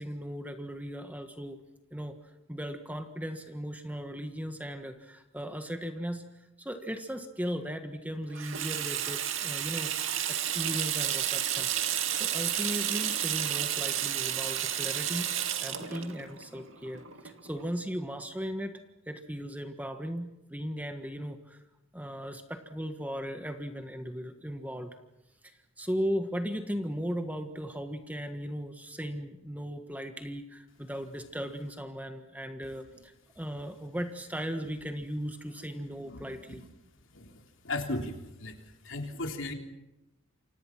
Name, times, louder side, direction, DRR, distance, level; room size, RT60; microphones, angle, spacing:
voice 1, 0.0-1.6 1.9-2.2 2.5-9.9 10.3-15.3 15.6-18.8 19.1-21.6 21.9-25.0 25.4-36.6, equal, 5° right, 6 dB, 1.5 m, -37 dB
Water tap faucet / Sink (filling or washing), 8.3-17.7, right 10 dB, 60° right, 2.4 m, -31 dB
voice 2, 37.6-38.5 38.8-39.5, left 2 dB, 55° left, 4 dB, 3.4 m, -35 dB
29.0 x 25.5 x 6.0 m, 0.94 s
head